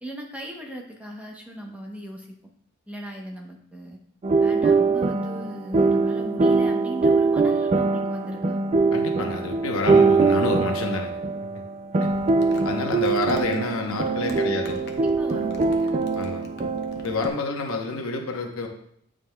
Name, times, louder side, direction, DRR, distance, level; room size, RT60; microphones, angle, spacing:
voice 1, 0.0-2.4 2.9-4.0 4.4-8.6 14.2-16.1, right 1 dB, 5° right, 0 dB, 0.8 m, -37 dB
sound 1, 4.2-17.3, right 4 dB, 30° right, 0.3 m, -22 dB
voice 2, 8.9-11.1 12.0-12.1 12.6-14.8 16.1-16.5 17.0-18.7, left 3 dB, 80° left, 3 dB, 0.9 m, -28 dB
Crumpling crinkling, 12.0-17.3, left 3 dB, 50° left, 0.8 m, -44 dB
9.1 x 4.9 x 2.3 m, 0.68 s
head